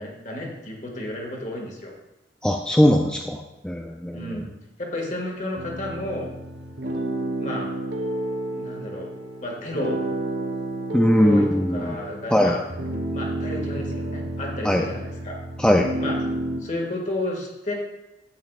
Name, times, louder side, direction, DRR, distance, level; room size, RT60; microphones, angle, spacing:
voice 1, 0.0-1.9 4.1-4.5 4.8-6.3 7.4-7.7 8.5-9.1 9.4-10.0 11.2-12.6 13.1-15.3 16.0-16.2 16.6-17.7, left 1 dB, 45° left, -1 dB, 1.9 m, -32 dB
voice 2, 2.4-4.4 10.9-12.0 12.3-12.6 14.6-14.9 15.6-15.9, equal, 5° left, 2 dB, 0.4 m, -20 dB
sound 1, 5.5-16.6, right 1 dB, 80° right, 1.1 m, -30 dB
10.5 x 8.5 x 2.4 m, 0.99 s
head